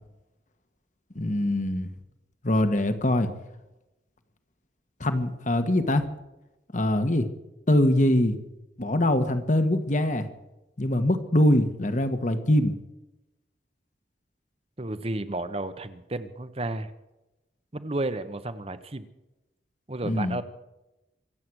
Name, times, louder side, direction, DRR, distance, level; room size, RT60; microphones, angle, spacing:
voice 1, 1.1-1.9 2.4-3.3 5.0-6.1 6.7-7.3 7.7-8.4 8.8-10.3 10.8-12.7 20.0-20.4, left 1 dB, 40° left, 9 dB, 1.5 m, -23 dB
voice 2, 14.8-16.9 17.7-19.1 19.9-20.4, right 2 dB, 35° right, 12 dB, 1.0 m, -32 dB
25.0 x 8.6 x 6.3 m, 0.98 s
head